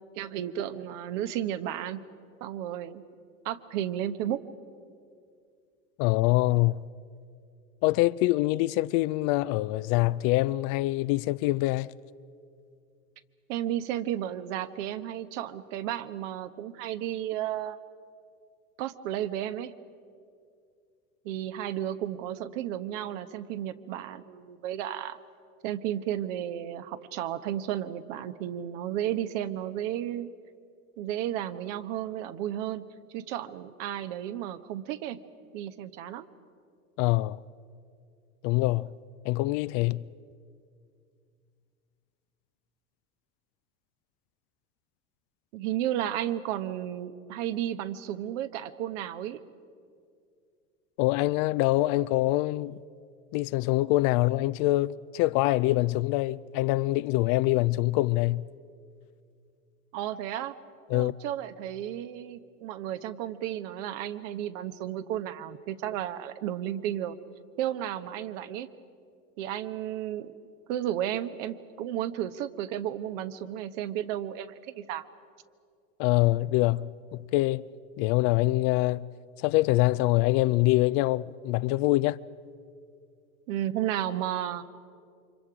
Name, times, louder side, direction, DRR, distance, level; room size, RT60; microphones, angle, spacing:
voice 1, 0.2-2.0 2.4-3.0 3.4-4.4 13.5-17.8 18.8-19.7 21.2-25.2 25.6-30.3 31.0-32.8 33.1-35.2 35.5-36.3 45.5-49.4 59.9-60.6 60.9-67.2 67.6-68.7 69.4-70.3 70.7-75.1 83.5-84.6, right 11 dB, 65° right, 1.2 m, -33 dB
voice 2, 6.0-6.8 7.8-11.9 37.0-37.4 38.4-38.9 39.2-40.1 51.0-52.8 53.3-58.5 60.9-61.1 76.0-77.7 78.0-79.1 79.4-82.2, left 19 dB, 50° left, 0.6 m, -25 dB
29.0 x 25.5 x 5.0 m
hypercardioid pair, 85°, 42 cm